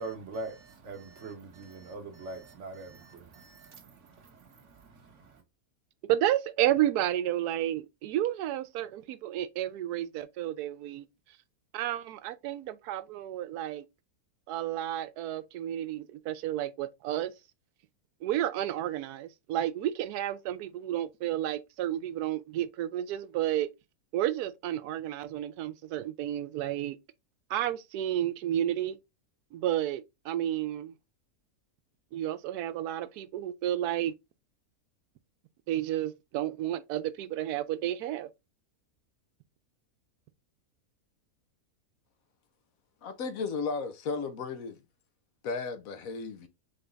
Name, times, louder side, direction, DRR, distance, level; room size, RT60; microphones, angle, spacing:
voice 1, 0.0-5.4, right 3 dB, 55° right, 1.2 m, -43 dB
voice 2, 6.1-11.1 11.7-13.8 14.5-17.3 18.2-23.7 24.1-27.0 27.5-29.0 29.5-30.9 32.1-34.1 35.7-38.3, right 12 dB, 90° right, 1.1 m, -31 dB
voice 3, 43.0-44.8 45.4-46.5, left 4 dB, 70° left, 1.1 m, -34 dB
3.8 x 3.4 x 3.8 m
omnidirectional pair, 1.6 m